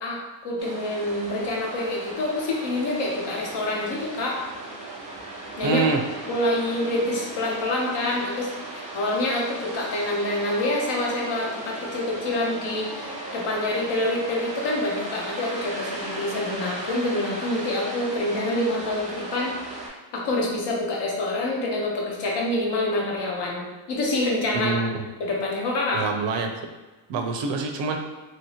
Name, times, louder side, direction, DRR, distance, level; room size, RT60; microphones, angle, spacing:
voice 1, 0.0-4.4 5.6-5.9 6.3-19.5 20.1-24.8 25.2-26.0, left 1 dB, 65° left, -2 dB, 0.9 m, -27 dB
sound 1, 0.6-19.9, right 2 dB, 15° right, 0.5 m, -37 dB
voice 2, 5.6-6.0 24.5-25.1 25.9-26.5 27.1-28.0, right 4 dB, 70° right, 4 dB, 0.5 m, -25 dB
sound 2, 10.2-16.5, left 1 dB, 25° left, 0.9 m, -42 dB
3.0 x 2.7 x 2.8 m, 1.2 s
cardioid pair, 150°, 46 cm